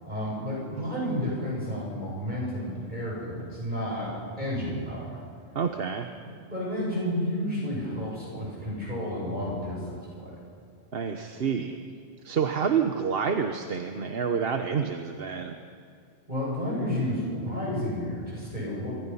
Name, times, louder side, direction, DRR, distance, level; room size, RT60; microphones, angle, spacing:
voice 1, 0.0-5.2 6.1-10.3 16.3-18.9, equal, 45° right, -4 dB, 7.2 m, -31 dB
voice 2, 5.5-6.1 10.9-11.8 12.2-15.6, right 6 dB, 65° right, 6 dB, 1.2 m, -28 dB
25.0 x 24.0 x 5.6 m, 2.2 s
omnidirectional pair, 1.1 m